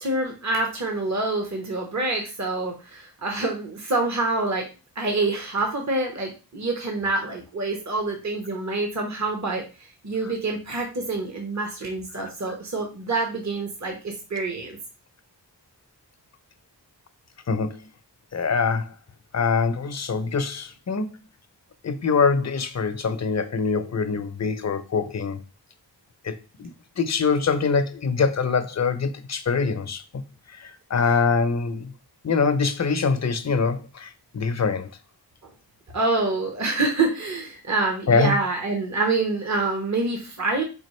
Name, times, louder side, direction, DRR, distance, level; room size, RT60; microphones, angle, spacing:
voice 1, 0.0-4.7 5.0-14.8 35.9-40.6, right 3 dB, 40° right, 1.0 m, -26 dB
voice 2, 17.5-17.8 18.3-18.9 19.3-21.1 21.8-25.4 26.2-30.2 30.5-31.9 32.2-34.9 38.1-38.3, left 5 dB, 40° left, 0.6 m, -24 dB
5.1 x 2.4 x 3.1 m
cardioid pair, 40°, 42 cm